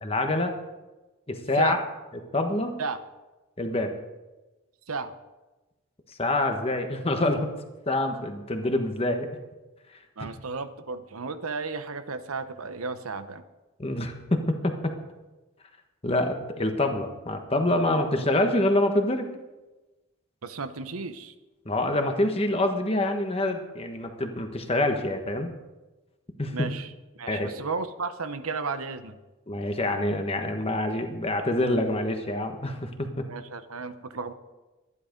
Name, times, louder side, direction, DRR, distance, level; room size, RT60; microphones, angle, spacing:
voice 1, 0.0-0.5 1.3-1.8 2.3-2.7 3.6-3.9 6.2-7.5 7.9-9.3 10.2-10.3 13.8-14.9 16.0-19.3 21.6-25.5 26.4-26.5 27.3-27.5 29.5-33.3, left 1 dB, 25° left, 5 dB, 1.2 m, -26 dB
voice 2, 10.2-13.4 20.4-21.3 26.5-26.9 27.2-29.2 33.3-34.3, right 4 dB, 85° right, 10 dB, 0.9 m, -33 dB
12.5 x 11.0 x 5.2 m, 1.1 s
head